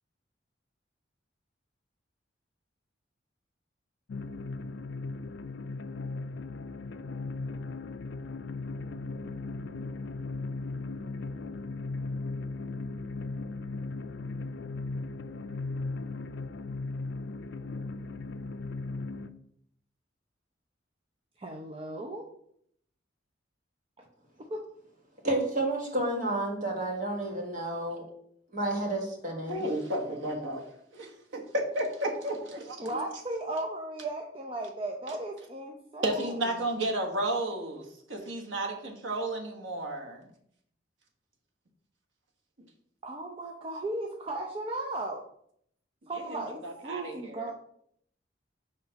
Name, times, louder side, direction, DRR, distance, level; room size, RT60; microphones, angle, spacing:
sound 1, 4.1-19.3, left 3 dB, 70° left, 0.4 m, -37 dB
voice 1, 21.4-22.2 24.5-24.6 32.8-36.7 43.0-45.2 46.1-47.5, right 2 dB, 30° right, 1 dB, 0.6 m, -36 dB
voice 2, 25.2-28.0 28.5-29.7, right 1 dB, 45° right, 0 dB, 1.5 m, -30 dB
voice 3, 29.5-30.6 30.9-32.8 36.0-40.3 46.1-47.5, right 1 dB, 90° right, 2 dB, 1.3 m, -33 dB
5.7 x 3.3 x 5.7 m, 0.69 s
head